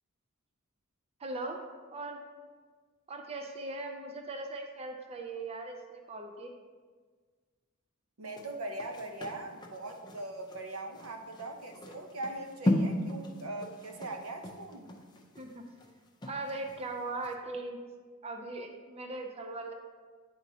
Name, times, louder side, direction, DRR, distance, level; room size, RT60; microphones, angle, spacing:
voice 1, 1.2-2.2 3.1-6.5 15.4-15.6 16.3-17.8 18.2-19.7, right 2 dB, 30° right, 3 dB, 0.4 m, -39 dB
voice 2, 8.2-14.9, right 2 dB, 75° right, 4 dB, 0.7 m, -41 dB
sound 1, 8.3-16.8 17.2-17.3, left 1 dB, 20° left, 0.5 m, -36 dB
9.3 x 4.0 x 2.7 m, 1.5 s
head